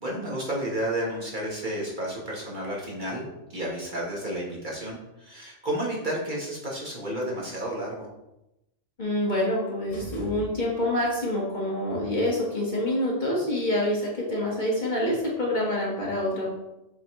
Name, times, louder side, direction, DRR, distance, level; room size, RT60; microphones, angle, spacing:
voice 1, 0.0-8.1, right 1 dB, 40° right, -3 dB, 1.4 m, -31 dB
voice 2, 9.0-16.5, left 1 dB, 40° left, -5 dB, 1.7 m, -26 dB
sound 1, 9.9-11.1, right 1 dB, 75° left, 2.0 m, -41 dB
7.7 x 4.0 x 3.1 m, 0.92 s
omnidirectional pair, 1.3 m